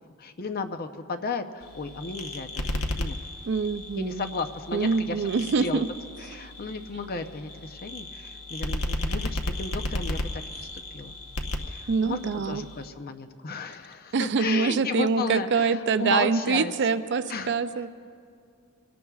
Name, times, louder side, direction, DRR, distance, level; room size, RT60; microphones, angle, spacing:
voice 1, 0.0-3.2 4.0-5.8 6.2-10.7 10.9-11.1 11.7-16.7 17.3-17.5, left 4 dB, 40° left, 8 dB, 0.6 m, -34 dB
sound 1, 1.6-12.9, left 1 dB, 75° left, 1.0 m, -34 dB
voice 2, 3.4-4.3 4.7-5.9 6.4-6.5 11.9-12.6 14.1-17.9, right 5 dB, 50° right, 12 dB, 0.4 m, -25 dB
26.0 x 18.0 x 2.4 m, 2.4 s
head